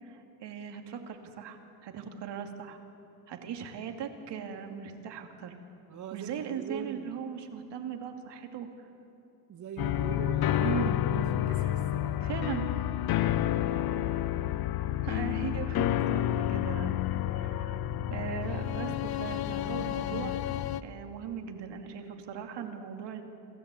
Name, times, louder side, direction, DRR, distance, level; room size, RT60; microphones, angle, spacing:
voice 1, 0.0-1.6 1.8-2.8 3.3-5.5 6.1-8.9 10.6-11.0 11.5-11.8 12.2-12.7 15.0-17.0 17.3-17.8 18.1-20.3 20.8-23.2, right 7 dB, 60° right, 4 dB, 2.6 m, -39 dB
voice 2, 5.9-7.1 9.5-10.8 11.1-12.2, right 7 dB, 40° right, 5 dB, 1.1 m, -42 dB
sound 1, 9.8-20.8, left 12 dB, 50° left, 0.8 m, -30 dB
27.0 x 13.5 x 8.4 m, 2.7 s
supercardioid pair, 85°, 48 cm